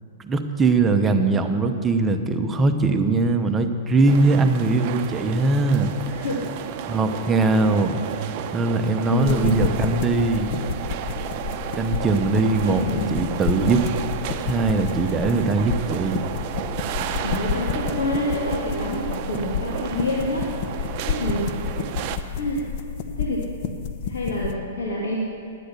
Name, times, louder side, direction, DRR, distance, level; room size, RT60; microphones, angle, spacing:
voice 1, 0.2-5.9 6.9-8.0 8.5-10.6 11.8-13.9 14.4-16.2, right 3 dB, 15° right, 7 dB, 0.8 m, -21 dB
sound 1, 4.1-22.2, right 9 dB, 45° right, 0.7 m, -33 dB
voice 2, 6.1-6.4 6.7-7.0 9.1-9.9 12.7-13.2 17.2-21.5 22.3-22.7 23.2-23.4 24.0-25.2, left 1 dB, 80° left, -4 dB, 1.9 m, -28 dB
sound 2, 9.2-24.6, left 7 dB, 50° left, 0.9 m, -30 dB
10.0 x 10.0 x 6.8 m, 2.4 s
hypercardioid pair, 125°, 0 cm